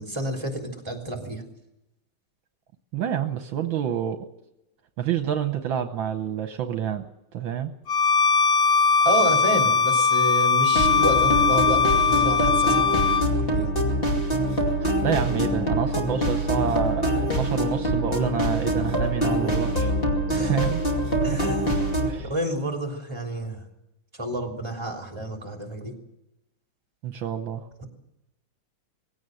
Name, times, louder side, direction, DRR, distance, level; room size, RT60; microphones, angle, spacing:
voice 1, 0.0-1.4 9.0-13.0 13.4-13.7 20.3-20.6 21.2-21.8 22.2-23.6 24.1-25.9 27.8-27.9, right 1 dB, 10° right, 2 dB, 3.4 m, -30 dB
voice 2, 2.9-4.2 5.0-7.0 7.3-7.7 14.8-19.9 20.3-20.8 21.3-21.5 22.1-22.3 27.0-27.7, right 9 dB, 70° right, 7 dB, 1.7 m, -28 dB
Bowed string instrument, 7.9-13.3, left 5 dB, 55° left, 0.6 m, -20 dB
sound 1, 10.7-22.1, right 1 dB, 25° left, 2.6 m, -24 dB
20.0 x 16.5 x 7.8 m, 0.89 s
omnidirectional pair, 2.3 m